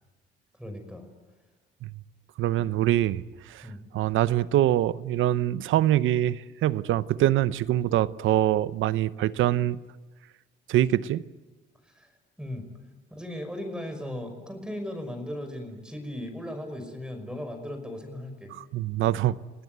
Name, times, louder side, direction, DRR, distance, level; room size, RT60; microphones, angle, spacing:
voice 1, 0.6-1.1 3.6-3.8 11.9-12.1 12.4-12.7 13.1-18.5, left 1 dB, 5° right, 5.7 m, -37 dB
voice 2, 2.4-3.2 3.5-3.7 3.9-9.8 10.7-11.2 18.5-19.4, right 13 dB, 80° right, 0.8 m, -24 dB
30.0 x 18.5 x 9.4 m
cardioid pair, 90°, 20 cm